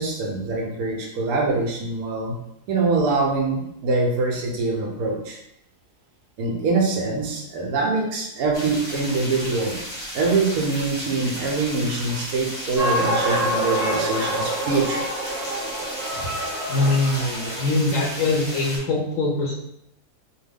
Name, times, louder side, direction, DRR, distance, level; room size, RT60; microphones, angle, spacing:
voice 1, 0.0-2.4 2.7-5.4 6.4-9.8 10.1-15.0 16.1-16.3 16.8-16.9, right 3 dB, 75° right, 0 dB, 1.1 m, -24 dB
sound 1, 8.5-18.8, equal, 25° left, 0.8 m, -34 dB
sound 2, 12.8-17.5, right 1 dB, 45° right, 1.0 m, -26 dB
voice 2, 16.7-19.6, left 2 dB, 70° left, -1 dB, 0.8 m, -22 dB
3.0 x 2.2 x 3.4 m, 0.79 s
omnidirectional pair, 1.6 m